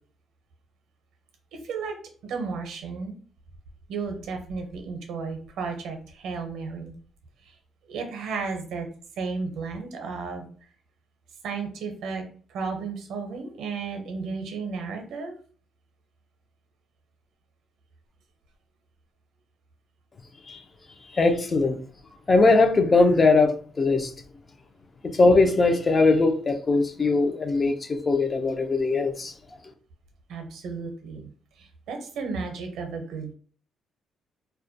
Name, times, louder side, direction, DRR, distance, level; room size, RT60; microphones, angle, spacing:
voice 1, 1.5-2.0 2.2-3.1 3.9-6.9 7.5-7.6 7.9-8.9 9.2-10.5 11.4-12.2 12.5-15.4 30.3-31.3 31.6-33.3, right 4 dB, 80° right, 0.6 m, -33 dB
voice 2, 21.1-21.8 22.3-24.1 25.0-29.3, left 3 dB, 35° left, 0.4 m, -20 dB
2.2 x 2.1 x 2.6 m
cardioid pair, 90°, 0 cm